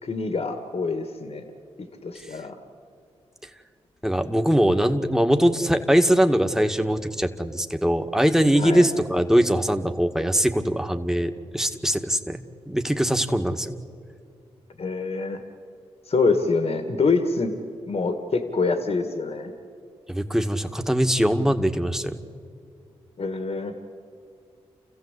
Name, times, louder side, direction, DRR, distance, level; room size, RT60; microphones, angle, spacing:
voice 1, 0.0-1.4 2.0-2.6 8.6-8.9 14.8-15.4 16.1-17.6 17.9-19.5 23.2-23.7, left 4 dB, 55° left, 6 dB, 2.0 m, -25 dB
voice 2, 4.0-13.8 20.1-22.2, equal, 5° right, 6 dB, 2.0 m, -22 dB
29.0 x 15.0 x 8.4 m, 2.5 s
supercardioid pair, 45°, 12 cm